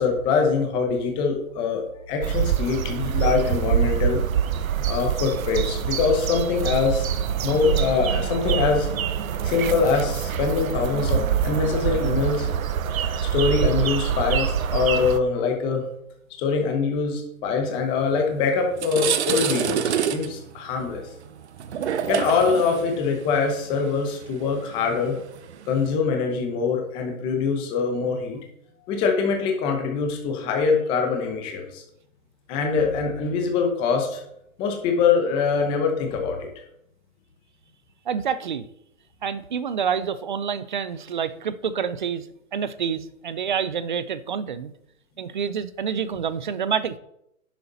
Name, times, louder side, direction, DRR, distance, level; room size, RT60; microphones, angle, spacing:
voice 1, 0.0-4.2 4.9-7.1 7.4-8.9 9.4-12.5 13.3-15.8 16.4-21.0 22.0-25.2 25.7-28.4 28.9-31.8 32.5-34.2 34.6-36.5, left 5 dB, 10° left, 3 dB, 0.9 m, -23 dB
sound 1, 2.2-15.2, right 8 dB, 85° right, 0.9 m, -25 dB
sound 2, 18.1-18.3 18.6-25.9, right 9 dB, 55° right, 0.8 m, -28 dB
voice 2, 38.1-38.6 39.2-42.3 42.5-44.7 45.2-47.0, right 7 dB, 40° right, 15 dB, 0.5 m, -27 dB
10.5 x 7.0 x 4.1 m, 0.78 s
hypercardioid pair, 170°, 41 cm